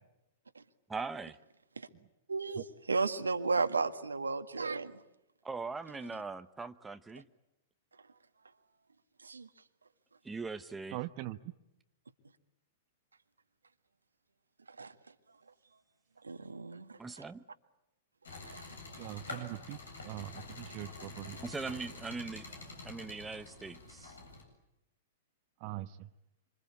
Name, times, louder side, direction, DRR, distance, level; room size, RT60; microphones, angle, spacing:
voice 1, 0.9-1.4 5.4-7.2 10.2-11.0 17.0-17.4 21.4-24.2, right 4 dB, 10° right, 10 dB, 1.0 m, -41 dB
voice 2, 2.3-4.9 9.2-9.5 14.8-14.9 16.2-17.2 18.4-18.6, right 4 dB, 80° right, 8 dB, 1.7 m, -34 dB
voice 3, 10.9-11.4 19.0-21.4 25.6-26.1, right 16 dB, 45° right, 11 dB, 1.1 m, -42 dB
sound 1, 18.2-24.4, left 3 dB, 75° left, 7.9 m, -47 dB
26.5 x 26.0 x 8.6 m, 0.88 s
figure-of-eight pair, 105°, 0 cm